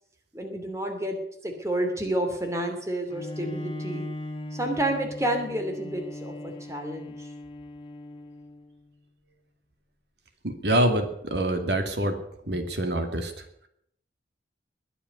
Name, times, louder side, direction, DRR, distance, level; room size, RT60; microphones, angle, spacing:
voice 1, 0.3-1.2 1.4-4.1 4.5-7.3, right 1 dB, 15° right, 4 dB, 2.7 m, -30 dB
Bowed string instrument, 3.1-8.7, left 1 dB, 30° left, 1.5 m, -38 dB
voice 2, 10.4-12.2 12.5-13.7, right 1 dB, 70° right, 6 dB, 2.4 m, -26 dB
21.0 x 7.1 x 9.5 m, 0.70 s
head